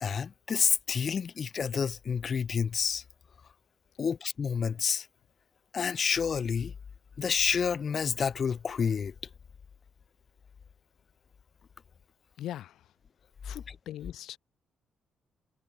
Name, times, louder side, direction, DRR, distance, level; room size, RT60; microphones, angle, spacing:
voice 1, 0.0-3.0 4.0-5.1 5.7-6.7 7.2-9.1, left 6 dB, 45° left, 1.0 m, -29 dB
voice 2, 12.4-12.9 13.4-14.4, left 12 dB, 80° left, 3.9 m, -40 dB
cardioid pair, 90°, 0 cm